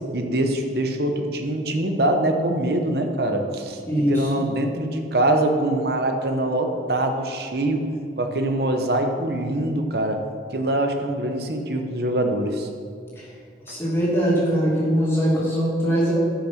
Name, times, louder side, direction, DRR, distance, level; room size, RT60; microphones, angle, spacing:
voice 1, 0.1-7.8 8.2-10.2 10.5-12.7 13.7-13.8, right 1 dB, 60° right, 5 dB, 0.9 m, -24 dB
voice 2, 3.9-4.4 13.7-16.1, equal, 15° left, -7 dB, 2.6 m, -21 dB
10.0 x 5.8 x 5.8 m, 2.4 s
head